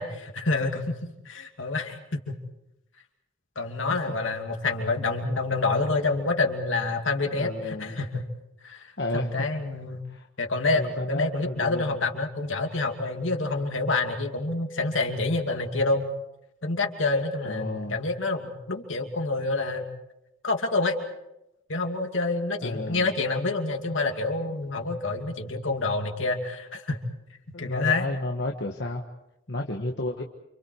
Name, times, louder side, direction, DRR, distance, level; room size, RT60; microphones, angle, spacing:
voice 1, 0.0-2.4 3.6-8.3 8.6-8.9 9.1-10.1 10.4-16.1 16.6-19.8 20.4-20.9 21.7-27.0 27.5-28.1, left 3 dB, 80° left, 3 dB, 2.8 m, -27 dB
voice 2, 7.3-8.0 9.0-9.5 10.1-10.3 10.7-12.0 17.4-18.0 22.6-23.1 27.5-29.0 29.5-30.2, left 2 dB, 60° left, 1 dB, 1.7 m, -32 dB
29.5 x 27.0 x 4.8 m, 0.88 s
head